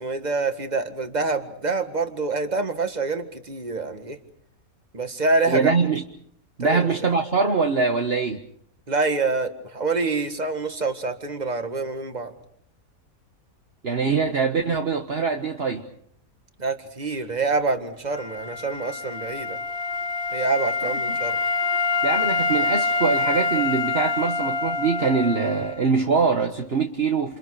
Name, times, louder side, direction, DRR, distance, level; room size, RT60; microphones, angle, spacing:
voice 1, 0.0-4.2 4.9-5.7 6.6-7.1 8.9-12.3 16.6-19.6 20.3-21.4, right 3 dB, 30° right, 1.9 m, -26 dB
voice 2, 5.5-6.0 6.6-8.4 13.8-15.8 20.8-20.9 22.0-27.4, right 5 dB, 45° right, 1.5 m, -23 dB
Wind instrument woodwind instrument, 18.1-25.9, left 3 dB, 45° left, 2.4 m, -26 dB
29.0 x 28.5 x 4.9 m
omnidirectional pair, 1.5 m